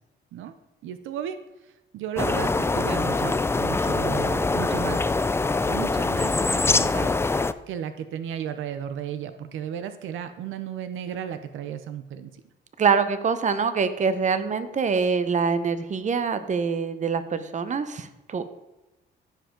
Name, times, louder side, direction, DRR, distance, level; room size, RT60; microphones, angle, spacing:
voice 1, 0.8-1.4 1.6-5.0 5.6-12.4, right 9 dB, 80° right, 9 dB, 0.7 m, -34 dB
sound 1, 2.2-7.5, left 3 dB, 15° left, 0.3 m, -24 dB
voice 2, 12.8-18.4, right 5 dB, 35° right, 11 dB, 0.8 m, -24 dB
15.0 x 5.1 x 3.8 m, 1.0 s
cardioid pair, 90°, 20 cm